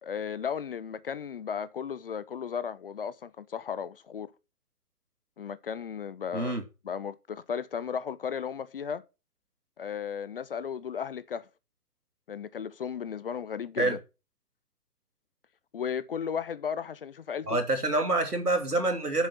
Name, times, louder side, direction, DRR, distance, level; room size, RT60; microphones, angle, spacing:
voice 1, 0.0-4.3 5.4-6.6 6.8-9.0 9.8-11.5 12.3-14.0 15.7-17.6, left 7 dB, 40° left, 0.6 m, -35 dB
voice 2, 17.5-19.3, right 2 dB, 85° right, 2.8 m, -26 dB
7.3 x 7.3 x 5.7 m
figure-of-eight pair, 130°, 45 cm